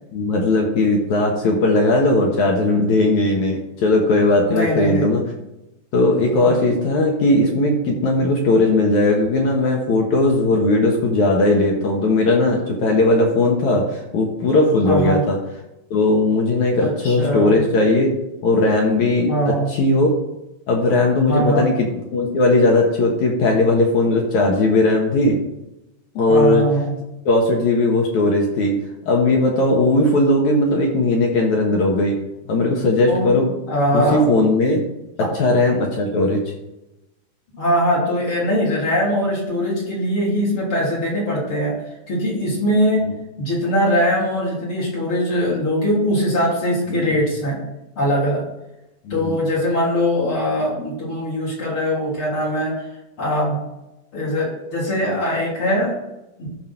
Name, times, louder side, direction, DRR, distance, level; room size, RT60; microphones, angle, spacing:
voice 1, 0.1-5.2 5.9-15.4 15.9-18.2 18.4-20.1 20.7-21.9 22.1-25.4 26.2-26.6 27.3-28.8 29.1-32.2 32.5-33.5 33.9-34.8 35.2-36.4 47.0-47.1 49.1-49.4, left 2 dB, 60° left, 0 dB, 2.2 m, -18 dB
voice 2, 4.5-5.2 6.3-6.6 14.9-15.2 16.8-17.6 19.3-19.7 21.3-21.7 26.3-27.0 33.1-33.3 33.7-34.2 35.2-35.3 37.5-41.8 42.1-43.1 43.4-47.6 48.0-48.4 49.1-52.8 53.2-53.6 54.1-56.0 56.4-56.5, equal, 35° left, -4 dB, 3.5 m, -21 dB
13.5 x 4.8 x 5.8 m, 0.93 s
omnidirectional pair, 4.6 m